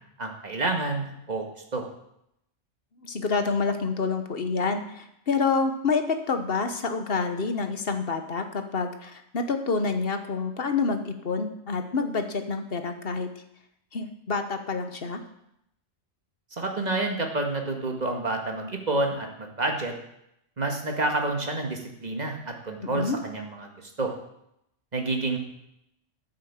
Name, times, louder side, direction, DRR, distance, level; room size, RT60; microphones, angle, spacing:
voice 1, 0.2-1.5 1.7-1.8 16.6-19.9 20.6-23.7 24.0-24.1 24.9-25.4, right 2 dB, 35° right, 2 dB, 2.0 m, -29 dB
voice 2, 3.0-13.3 13.9-15.2 22.8-23.2, left 4 dB, 50° left, 7 dB, 1.3 m, -28 dB
10.0 x 9.1 x 7.4 m, 0.79 s
omnidirectional pair, 1.3 m